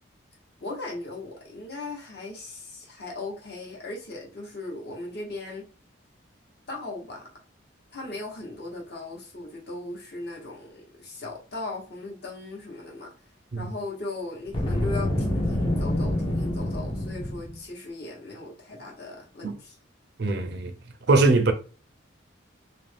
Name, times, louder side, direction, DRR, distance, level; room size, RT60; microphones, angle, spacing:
voice 1, 0.6-5.7 6.7-7.3 7.9-13.1 13.6-19.8, left 2 dB, 55° left, 1.0 m, -38 dB
Boom, 14.5-17.6, left 1 dB, 25° left, 0.5 m, -27 dB
voice 2, 20.2-20.7 21.1-21.5, right 3 dB, 55° right, 0.4 m, -21 dB
2.5 x 2.1 x 3.2 m
head